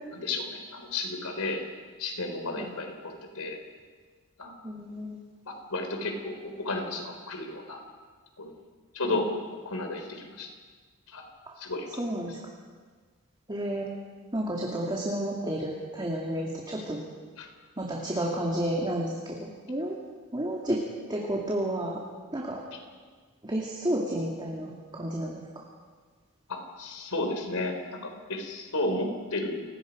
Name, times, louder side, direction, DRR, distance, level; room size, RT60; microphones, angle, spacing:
voice 1, 0.1-1.6 2.0-3.6 4.4-4.5 5.5-7.8 8.4-8.5 8.9-9.3 9.6-10.5 11.1-11.2 11.6-11.9 17.4-17.5 26.5-29.6, left 2 dB, 70° left, 5 dB, 3.6 m, -33 dB
voice 2, 4.6-5.2 9.0-9.1 11.5-11.6 12.0-12.4 13.5-13.9 14.3-17.0 17.8-20.0 20.3-20.8 21.1-22.0 22.3-22.6 23.4-25.4, right 1 dB, 20° right, -3 dB, 2.5 m, -31 dB
29.5 x 18.0 x 5.3 m, 1.5 s
head